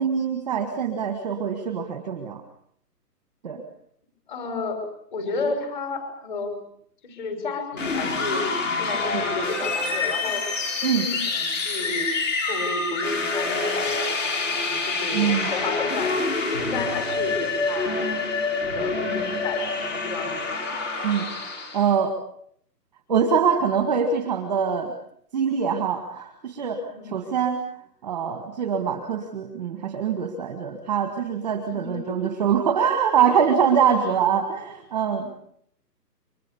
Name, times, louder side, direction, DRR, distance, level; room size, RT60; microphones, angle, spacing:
voice 1, 0.0-2.4 3.4-3.6 10.8-11.1 15.1-15.5 21.0-21.3 21.7-22.1 23.1-24.9 25.3-27.6 28.0-35.4, right 7 dB, 5° right, 6 dB, 1.3 m, -24 dB
voice 2, 4.3-4.8 5.1-6.5 7.0-10.4 10.8-12.1 12.5-14.0 14.5-16.2 16.6-18.1 18.5-20.6 26.9-27.1 31.7-32.2 34.0-34.2, left 3 dB, 30° left, 7 dB, 6.1 m, -32 dB
sound 1, 7.7-21.9, left 3 dB, 50° left, 7.4 m, -27 dB
29.0 x 24.5 x 7.0 m, 0.67 s
hypercardioid pair, 175°, 49 cm